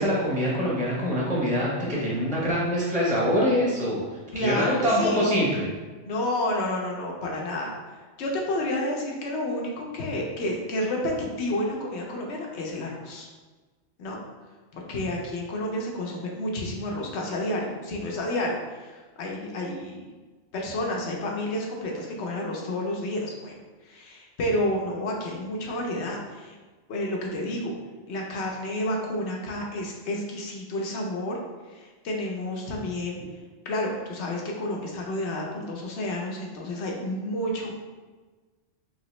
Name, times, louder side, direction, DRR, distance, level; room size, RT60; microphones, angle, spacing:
voice 1, 0.0-4.0 4.3-5.6, equal, 5° left, -6 dB, 0.7 m, -24 dB
voice 2, 4.3-5.3 6.0-13.3 14.0-14.2 14.7-20.1 20.5-23.6 23.8-26.6 26.9-27.7 28.1-31.4 31.7-33.2 33.6-37.8, left 1 dB, 65° left, -1 dB, 0.9 m, -30 dB
3.4 x 2.9 x 3.0 m, 1.3 s
omnidirectional pair, 1.3 m